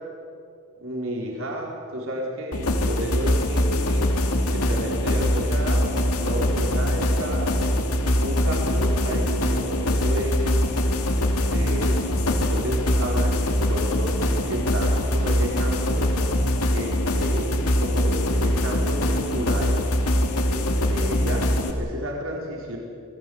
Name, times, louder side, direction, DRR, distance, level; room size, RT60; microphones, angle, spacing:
voice 1, 0.8-4.1 4.5-7.6 8.2-10.7 11.5-12.2 12.5-16.1 16.7-19.8 20.4-22.8, equal, 65° right, -1 dB, 4.2 m, -31 dB
sound 1, 2.5-21.7, left 1 dB, 85° left, 2.7 m, -23 dB
26.5 x 19.0 x 7.9 m, 2.4 s
head